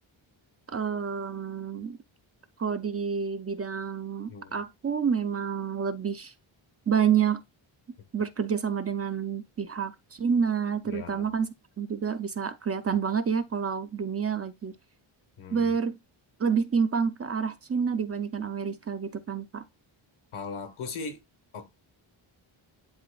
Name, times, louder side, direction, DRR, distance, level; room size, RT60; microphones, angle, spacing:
voice 1, 0.7-2.0 2.6-6.3 6.9-7.4 8.1-11.5 11.8-14.7 15.5-16.0 16.4-19.6, right 6 dB, 30° right, 0.4 m, -28 dB
voice 2, 4.3-4.6 10.9-11.4 15.4-15.7 20.3-21.2 21.5-21.7, left 4 dB, 80° left, 1.4 m, -39 dB
10.5 x 4.2 x 2.3 m
wide cardioid pair, 170°, 49 cm